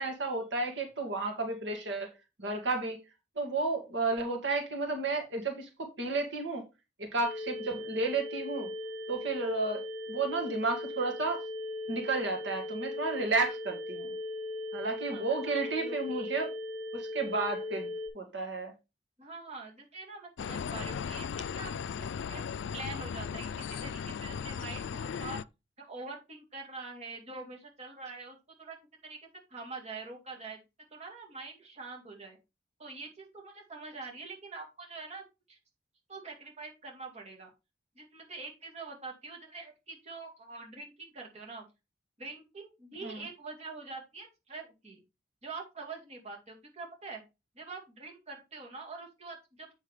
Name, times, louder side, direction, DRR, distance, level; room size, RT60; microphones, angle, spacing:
voice 1, 0.0-2.1 2.4-3.0 3.4-6.6 7.0-8.7 9.1-9.8 10.1-11.4 11.9-14.1 14.7-16.5 16.9-18.7 43.0-43.2, right 3 dB, 75° right, 2.0 m, -32 dB
sound 1, 7.2-18.1, left 2 dB, 20° right, 5.7 m, -38 dB
voice 2, 15.1-16.4 19.2-21.7 22.0-22.4 22.7-25.4 25.8-28.8 29.0-29.2 29.5-30.6 30.9-32.4 32.8-35.2 35.5-35.6 36.1-37.5 38.0-41.7 42.2-45.0 45.4-47.2 47.6-49.7, right 3 dB, 35° right, 2.4 m, -45 dB
sound 2, 20.4-25.4, left 7 dB, 80° left, 0.4 m, -37 dB
8.1 x 6.3 x 3.5 m
head